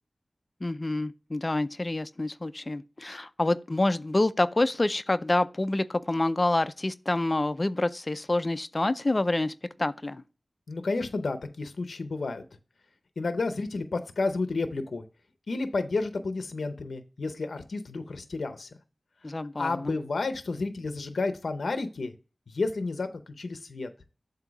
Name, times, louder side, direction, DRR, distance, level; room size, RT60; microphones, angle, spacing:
voice 1, 0.6-9.5 9.8-10.2 19.2-20.0, left 2 dB, 35° left, 0.4 m, -27 dB
voice 2, 10.7-12.4 13.2-15.0 15.5-18.7 19.6-22.1 22.5-23.1 23.4-23.9, left 3 dB, 85° left, 0.6 m, -31 dB
7.9 x 2.7 x 5.9 m
wide cardioid pair, 65°, 0 cm